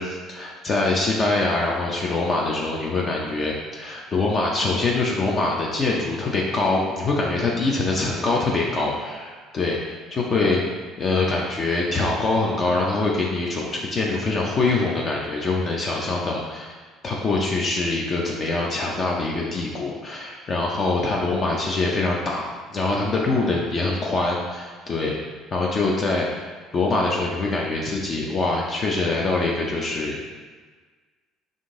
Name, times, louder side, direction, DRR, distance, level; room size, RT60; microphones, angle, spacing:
voice 1, 0.0-10.6 11.0-16.4 17.0-25.1 25.5-30.2, left 3 dB, 40° left, -2 dB, 0.6 m, -24 dB
3.7 x 2.6 x 3.7 m, 1.5 s
supercardioid pair, 80°, 0 cm